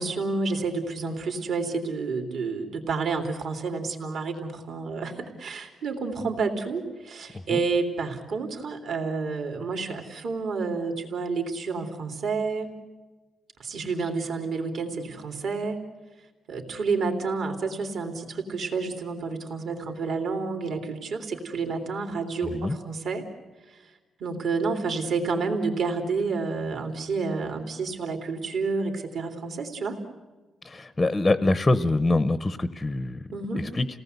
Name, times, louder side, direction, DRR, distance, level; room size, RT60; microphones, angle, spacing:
voice 1, 0.0-12.7 13.6-15.8 16.5-23.3 24.2-30.0 33.3-33.6, right 4 dB, 60° right, 4 dB, 3.3 m, -29 dB
voice 2, 22.4-22.8 30.6-33.2 33.7-33.9, left 2 dB, 15° left, 13 dB, 0.7 m, -24 dB
29.5 x 18.5 x 8.1 m, 1.3 s
wide cardioid pair, 175°, 0 cm